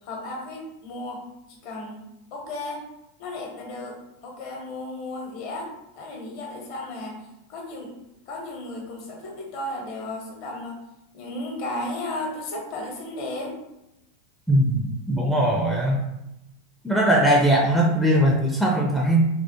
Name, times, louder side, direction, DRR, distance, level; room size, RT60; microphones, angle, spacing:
voice 1, 0.0-1.2 1.5-2.8 3.2-4.0 4.2-7.2 7.5-7.9 8.3-10.8 11.1-13.6, left 2 dB, 50° left, -1 dB, 0.8 m, -34 dB
voice 2, 14.5-16.0 16.8-19.2, right 1 dB, ahead, -2 dB, 0.4 m, -20 dB
2.2 x 2.1 x 2.9 m, 0.88 s
figure-of-eight pair, 85°, 0 cm